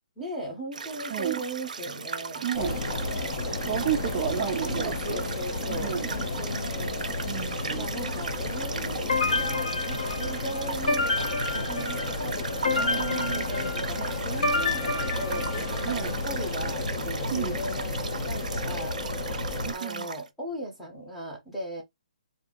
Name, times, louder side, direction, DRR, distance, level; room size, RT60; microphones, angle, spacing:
voice 1, 0.2-2.5 4.0-4.2 4.7-7.0 7.7-11.1 11.5-13.1 13.3-19.0 19.7-21.8, right 1 dB, ahead, 0.8 m, -38 dB
sound 1, 0.7-20.3, right 5 dB, 70° right, 0.5 m, -37 dB
voice 2, 1.1-1.4 2.4-2.8 3.7-5.2 5.6-6.1 7.3-7.9 12.7-13.4 15.9-16.1 17.3-17.6 19.2-20.1, right 9 dB, 20° right, 0.4 m, -32 dB
sound 2, 2.5-19.7, left 2 dB, 30° left, 0.6 m, -32 dB
sound 3, 9.1-16.0, left 3 dB, 65° left, 1.0 m, -30 dB
2.7 x 2.6 x 3.6 m
hypercardioid pair, 175°, 4 cm